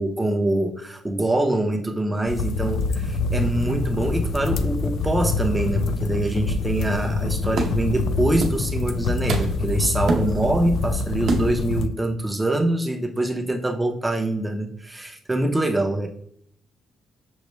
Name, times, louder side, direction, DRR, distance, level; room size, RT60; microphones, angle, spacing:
voice 1, 0.0-16.1, right 1 dB, 10° right, 3 dB, 0.6 m, -24 dB
sound 1, 2.3-11.9, left 3 dB, 75° left, 0.3 m, -25 dB
sound 2, 7.6-8.0 8.4-8.7 9.0-9.7 10.1-10.7 11.3-11.7, right 3 dB, 65° right, 0.7 m, -27 dB
6.2 x 2.1 x 3.1 m, 0.68 s
cardioid pair, 145°, 0 cm